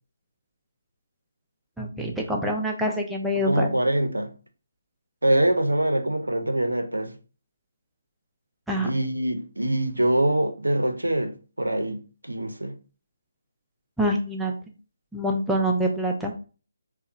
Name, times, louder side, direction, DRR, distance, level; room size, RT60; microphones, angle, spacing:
voice 1, 1.8-3.7 8.7-8.9 14.0-14.5 15.1-16.3, equal, ahead, 0.3 m, -25 dB
voice 2, 3.4-4.3 5.2-7.1 8.8-12.7, right 1 dB, 90° right, 0.4 m, -24 dB
2.7 x 2.0 x 2.3 m
figure-of-eight pair, 150°, 0 cm